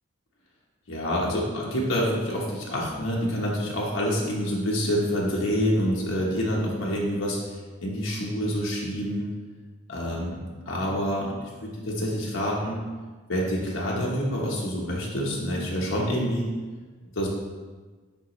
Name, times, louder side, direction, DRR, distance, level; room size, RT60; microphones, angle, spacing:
voice 1, 0.9-7.6 7.8-9.3 9.9-10.4 10.7-12.8 13.3-16.5 17.1-17.3, equal, 80° left, -4 dB, 1.0 m, -27 dB
9.9 x 3.7 x 3.1 m, 1.4 s
head